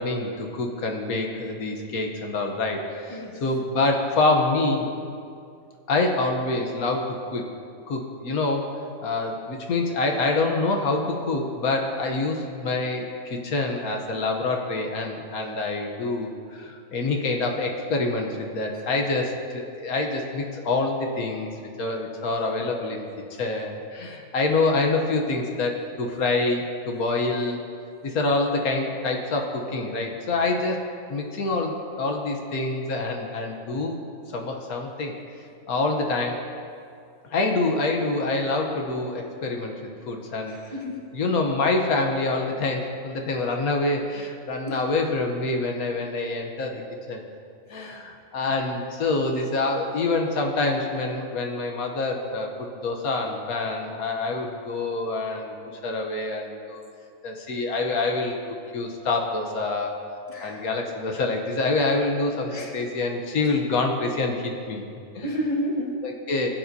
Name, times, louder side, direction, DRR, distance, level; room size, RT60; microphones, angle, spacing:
voice 1, 0.0-4.9 5.9-7.5 7.9-8.7 9.0-21.5 21.8-23.1 23.4-27.6 28.0-30.8 31.1-34.0 34.3-35.1 35.7-36.4 37.3-39.7 40.1-40.6 41.1-46.8 47.1-47.2 47.7-55.5 55.8-56.8 57.2-58.4 58.7-60.0 60.4-64.8 65.1-65.3 66.0-66.5, left 3 dB, 80° left, 2 dB, 1.4 m, -26 dB
voice 2, 40.5-41.0 44.7-44.8 47.7-47.8 60.3-60.7 62.5-62.7 65.2-65.9, equal, 25° left, -2 dB, 1.5 m, -30 dB
21.0 x 8.9 x 2.7 m, 2.4 s
omnidirectional pair, 1.5 m